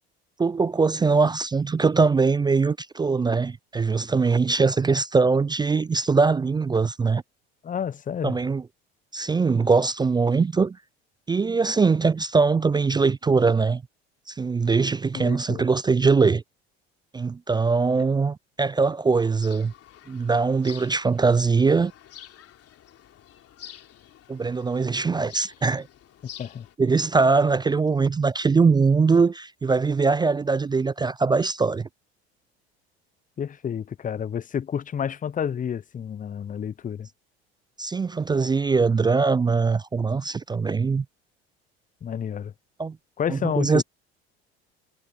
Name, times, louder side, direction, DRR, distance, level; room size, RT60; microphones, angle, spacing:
voice 1, 0.4-7.2 8.2-8.6 9.1-10.8 11.3-13.8 14.3-16.4 17.1-19.7 20.1-21.9 24.3-25.9 26.8-31.9 37.8-41.0 42.8-43.0 43.3-43.8, right 4 dB, 15° right, 0.4 m, -22 dB
voice 2, 7.6-8.4 15.1-15.6 26.4-26.7 33.4-37.1 42.0-42.5 43.2-43.8, left 8 dB, 25° left, 0.7 m, -30 dB
sound 1, 19.4-26.8, left 11 dB, 50° left, 3.3 m, -48 dB
hypercardioid pair, 75°, 32 cm